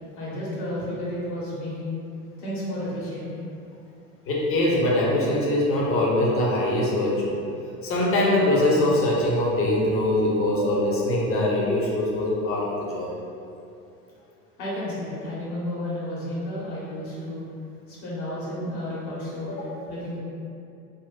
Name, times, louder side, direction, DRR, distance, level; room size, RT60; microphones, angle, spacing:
voice 1, 0.1-2.0 2.4-3.3 14.6-17.4 17.9-20.2, left 1 dB, 65° left, -8 dB, 1.3 m, -32 dB
voice 2, 4.3-7.3 7.8-13.1 19.5-19.7, left 1 dB, 30° left, -4 dB, 0.7 m, -22 dB
3.8 x 2.2 x 2.3 m, 2.6 s
figure-of-eight pair, 75°, 46 cm